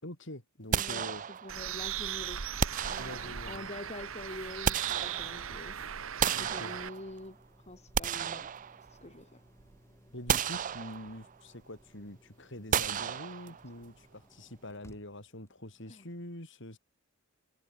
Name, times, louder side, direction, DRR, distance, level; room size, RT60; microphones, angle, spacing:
voice 1, 0.0-1.2 3.0-3.7 6.3-6.8 10.1-16.8, left 1 dB, 60° left, 6.6 m, -45 dB
voice 2, 0.7-2.4 2.8-5.8 6.3-7.4 7.7-8.5 8.8-9.4 15.9-16.1, left 1 dB, 35° left, 2.3 m, -45 dB
sound 1, 0.7-1.8 2.6-3.6 4.3-5.6 6.2-7.3 7.7-9.2 9.6-9.7 10.3-11.3 12.7-13.8, right 8 dB, 40° right, 0.5 m, -33 dB
sound 2, 1.0-16.2, equal, 15° left, 7.6 m, -63 dB
Bird, 1.5-6.9, right 9 dB, 75° right, 1.0 m, -38 dB
head